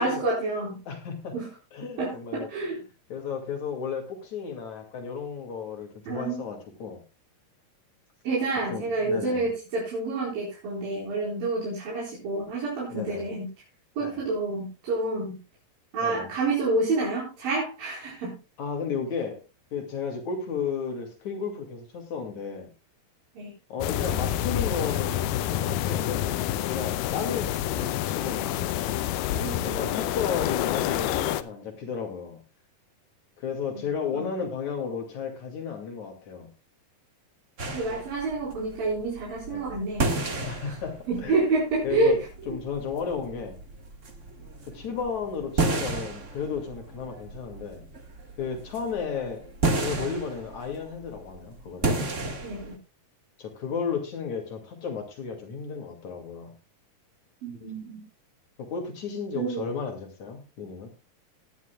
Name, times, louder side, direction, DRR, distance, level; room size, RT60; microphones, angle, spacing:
voice 1, 0.0-0.8 1.3-1.5 2.0-2.8 6.1-6.4 8.2-13.5 14.0-15.4 15.9-18.4 23.4-23.5 29.3-30.0 33.7-33.9 34.1-34.3 37.7-40.1 41.1-42.2 42.5-42.6 52.4-52.8 57.4-58.1 59.3-59.7, right 3 dB, 85° right, -5 dB, 6.1 m, -28 dB
voice 2, 0.9-1.4 1.7-2.5 3.1-7.0 8.7-9.5 12.9-13.3 14.0-14.2 16.0-16.3 18.6-19.4 19.7-22.7 23.7-26.3 26.6-28.8 29.6-32.4 33.4-36.5 39.5-39.7 40.4-41.4 41.8-42.2 42.5-43.6 44.7-47.9 48.4-49.4 49.8-52.0 53.4-56.5 58.6-60.9, left 6 dB, 55° left, 4 dB, 3.5 m, -33 dB
sound 1, 23.8-31.4, left 12 dB, 80° left, 2.3 m, -28 dB
sound 2, 37.6-52.7, right 2 dB, 40° right, 1.0 m, -33 dB
18.5 x 11.0 x 2.3 m, 0.30 s
omnidirectional pair, 4.0 m